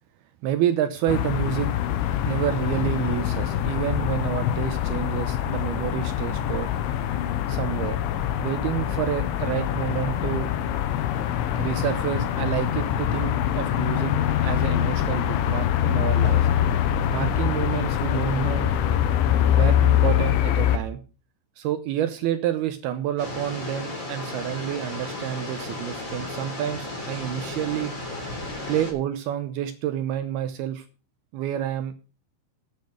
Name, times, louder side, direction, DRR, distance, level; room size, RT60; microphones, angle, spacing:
voice 1, 0.4-1.7 2.2-6.7 7.5-8.0 8.4-10.5 11.6-14.1 14.4-16.5 17.1-18.7 19.5-21.0 21.6-27.9 28.7-30.9 31.3-31.9, right 11 dB, 80° right, 10 dB, 2.2 m, -28 dB
sound 1, 1.1-20.8, left 10 dB, 85° left, 3.3 m, -24 dB
sound 2, 23.2-28.9, left 2 dB, 20° left, 3.0 m, -34 dB
10.0 x 8.6 x 6.4 m, 0.36 s
omnidirectional pair, 5.4 m